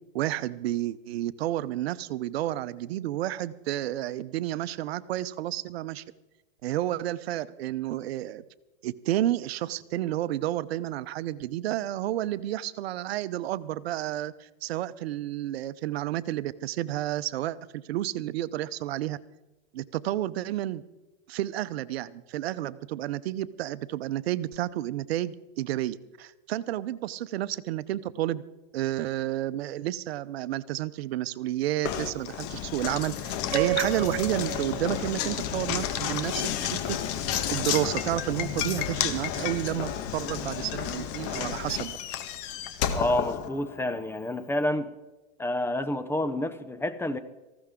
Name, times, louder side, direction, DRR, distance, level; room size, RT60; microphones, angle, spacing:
voice 1, 0.1-6.0 6.6-8.4 8.8-19.2 19.7-20.8 21.3-28.4 28.7-37.0 37.3-42.0, right 14 dB, 80° right, 0.8 m, -31 dB
Knock, 31.8-44.0, left 9 dB, 45° left, 1.6 m, -31 dB
sound 1, 33.5-35.9, right 16 dB, 45° right, 1.7 m, -33 dB
voice 2, 42.9-44.9 45.4-47.2, left 1 dB, 10° left, 0.7 m, -29 dB
19.0 x 15.5 x 3.7 m
supercardioid pair, 135°, 30 cm